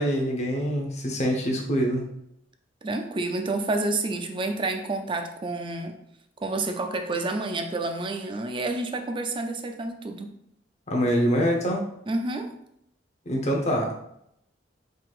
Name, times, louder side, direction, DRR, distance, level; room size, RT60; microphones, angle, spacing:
voice 1, 0.0-2.0 10.9-11.9 13.3-13.9, equal, 40° left, 1 dB, 0.8 m, -25 dB
voice 2, 2.8-6.0 6.4-10.3 12.1-12.6, right 2 dB, 25° right, 6 dB, 0.4 m, -29 dB
4.6 x 3.8 x 2.4 m, 0.76 s
head